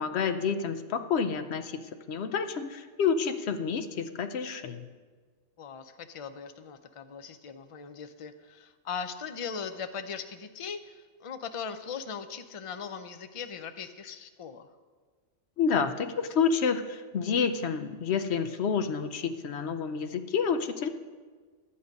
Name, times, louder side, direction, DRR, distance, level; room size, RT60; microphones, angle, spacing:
voice 1, 0.0-1.8 2.1-4.9 15.6-20.9, left 6 dB, 60° left, 9 dB, 0.9 m, -29 dB
voice 2, 5.6-14.7, left 6 dB, 40° left, 9 dB, 0.4 m, -39 dB
11.0 x 8.6 x 5.2 m, 1.5 s
omnidirectional pair, 1.3 m